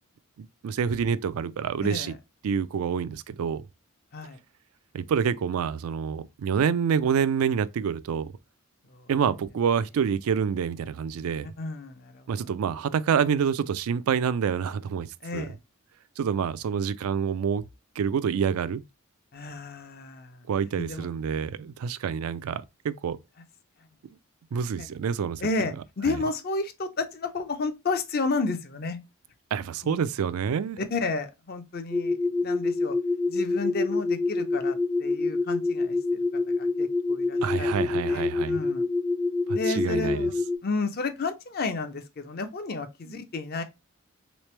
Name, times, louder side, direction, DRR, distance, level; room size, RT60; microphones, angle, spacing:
voice 1, 0.4-2.1 2.4-3.6 4.9-8.3 9.1-11.5 12.3-15.1 15.3-15.5 16.2-17.6 18.0-18.8 20.5-23.2 24.5-25.4 26.1-26.2 29.5-30.8 37.4-38.6 39.5-40.3, right 7 dB, 75° right, 0.3 m, -27 dB
voice 2, 11.6-12.2 15.2-15.6 19.3-20.4 20.8-21.1 24.8-24.9 25.4-29.0 29.8-30.0 30.8-33.0 33.3-36.0 36.6-38.8 39.5-43.6, left 3 dB, 45° left, 0.5 m, -32 dB
sound 1, 31.9-40.6, left 3 dB, 10° right, 0.4 m, -26 dB
3.3 x 3.1 x 3.1 m
head